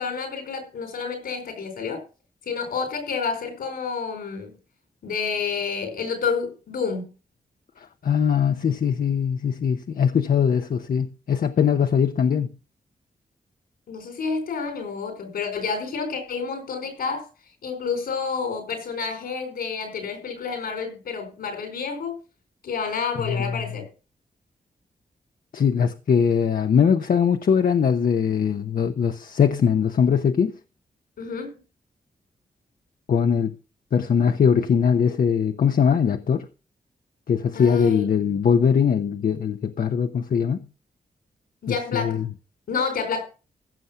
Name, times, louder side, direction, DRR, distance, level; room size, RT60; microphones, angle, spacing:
voice 1, 0.0-2.0 2.5-4.5 5.0-7.1 13.9-17.3 17.6-22.1 22.6-23.9 31.2-31.5 37.5-38.2 41.6-42.2 42.7-43.2, left 5 dB, 90° left, 4.7 m, -29 dB
voice 2, 8.0-12.5 23.3-23.6 25.5-30.5 33.1-33.5 33.9-36.5 37.3-40.6 41.7-42.2, left 7 dB, 70° left, 0.9 m, -21 dB
15.5 x 6.5 x 5.8 m
cardioid pair, 50°, 15 cm